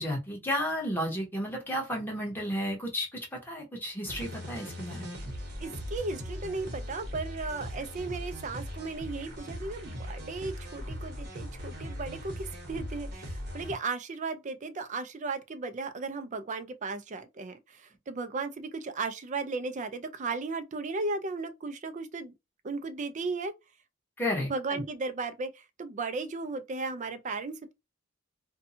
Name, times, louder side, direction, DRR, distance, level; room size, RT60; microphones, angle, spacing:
voice 1, 0.0-5.2 24.2-24.5, equal, 10° left, 1.1 m, -32 dB
sound 1, 4.1-13.7, equal, 55° right, 1.0 m, -39 dB
voice 2, 5.6-22.3 22.6-23.5 24.5-27.7, right 3 dB, 35° right, 0.4 m, -35 dB
2.6 x 2.3 x 2.6 m
head